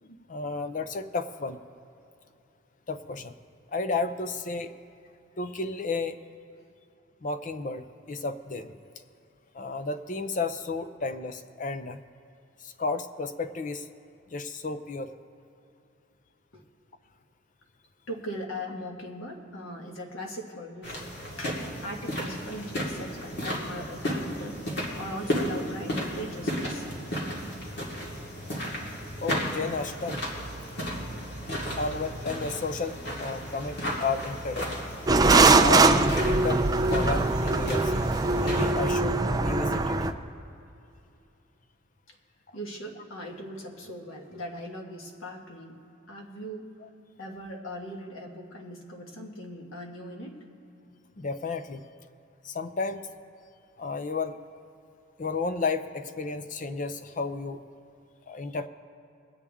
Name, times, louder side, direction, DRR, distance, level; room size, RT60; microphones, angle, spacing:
voice 1, 0.0-1.6 2.9-3.3 3.7-4.7 5.4-6.2 7.2-8.8 9.5-12.0 12.6-13.9 14.3-15.1 27.9-28.1 29.2-30.2 31.8-34.8 35.6-36.6 36.9-37.9 38.4-40.0 42.5-42.6 46.8-46.9 51.2-51.8 52.4-53.1 53.8-54.4 55.2-57.6 58.3-58.7, left 4 dB, 40° left, 10 dB, 0.5 m, -32 dB
voice 2, 18.1-21.1 21.4-26.9 42.1-42.2 42.5-45.8 46.1-46.7 47.2-50.4, equal, 90° left, 1 dB, 1.6 m, -39 dB
sound 1, 20.8-38.7, equal, 55° left, 2.1 m, -34 dB
sound 2, 35.1-40.1, right 3 dB, 20° right, 0.4 m, -22 dB
22.0 x 8.5 x 3.6 m, 2.8 s
head